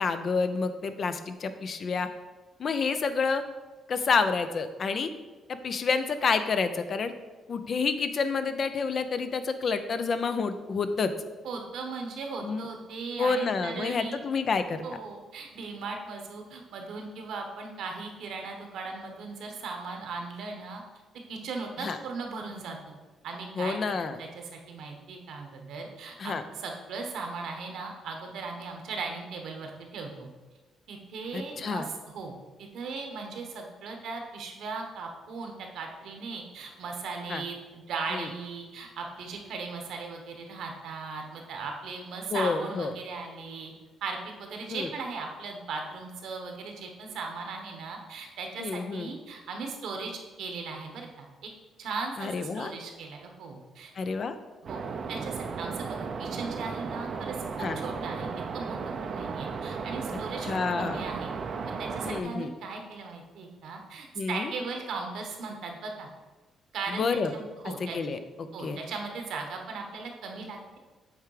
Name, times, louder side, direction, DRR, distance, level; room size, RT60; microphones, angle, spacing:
voice 1, 0.0-2.1 2.6-3.4 3.9-5.1 5.5-7.1 7.5-11.1 12.4-12.6 13.2-14.8 21.8-22.0 23.6-24.2 26.2-26.4 31.3-31.9 37.3-37.4 38.1-38.3 42.3-42.9 44.7-44.9 48.6-49.1 52.2-52.7 54.0-54.4 57.6-57.8 60.1-61.0 62.0-62.5 64.2-64.5 66.9-67.3 67.8-68.8, left 4 dB, 50° left, 10 dB, 0.5 m, -29 dB
voice 2, 11.4-14.2 14.8-20.8 21.3-22.9 23.2-23.8 24.2-30.3 30.9-43.7 44.0-51.5 51.8-53.9 54.6-54.8 55.1-60.5 60.8-61.3 61.6-66.1 66.7-68.0 68.5-70.8, right 4 dB, 75° right, 3 dB, 1.2 m, -38 dB
sound 1, 54.7-62.2, right 5 dB, 50° right, 0.5 m, -35 dB
8.0 x 3.5 x 4.9 m, 1.2 s
cardioid pair, 90°, 0 cm